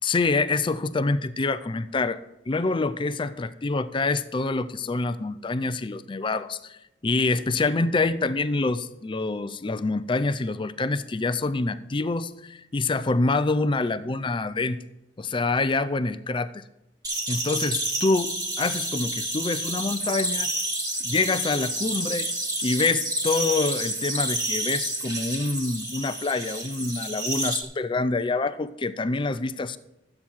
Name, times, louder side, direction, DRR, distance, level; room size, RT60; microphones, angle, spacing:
voice 1, 0.0-2.2 2.5-6.8 7.0-14.8 15.2-16.6 17.3-20.5 21.0-22.3 22.6-29.8, left 3 dB, 25° left, 13 dB, 0.5 m, -26 dB
sound 1, 17.0-27.6, right 1 dB, 20° right, 1.9 m, -29 dB
12.5 x 8.6 x 4.5 m, 0.93 s
head